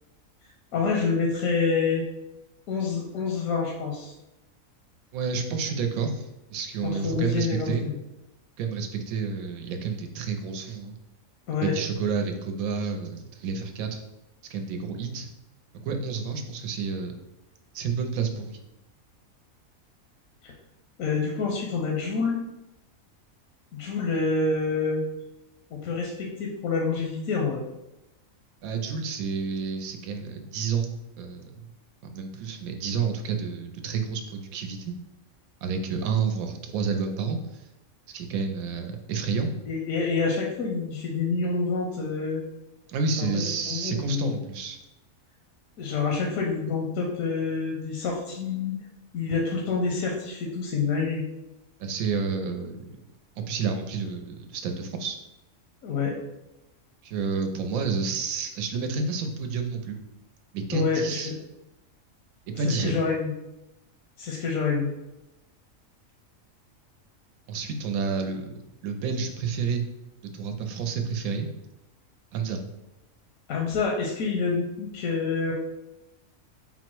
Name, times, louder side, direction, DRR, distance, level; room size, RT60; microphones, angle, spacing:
voice 1, 0.7-2.0 2.7-4.1 6.8-8.0 11.5-11.7 20.4-20.5 21.0-22.4 23.7-25.0 25.7-27.6 39.7-42.4 43.2-43.3 43.7-44.4 45.8-48.7 49.1-51.2 55.8-56.1 60.7-61.3 62.7-63.3 64.2-64.9 73.5-75.5, left 4 dB, 85° left, -1 dB, 1.1 m, -27 dB
voice 2, 5.1-7.8 8.6-10.9 11.6-14.0 14.5-15.3 15.8-17.1 17.7-18.6 28.6-31.7 32.0-35.0 35.6-37.7 38.1-39.5 42.9-44.8 51.8-53.0 53.4-55.2 57.0-60.0 60.5-61.3 62.5-63.0 67.5-68.5 68.8-69.9 70.3-71.5 72.3-72.6, right 5 dB, 90° right, 5 dB, 1.0 m, -30 dB
3.8 x 2.1 x 4.4 m, 0.92 s
omnidirectional pair, 1.4 m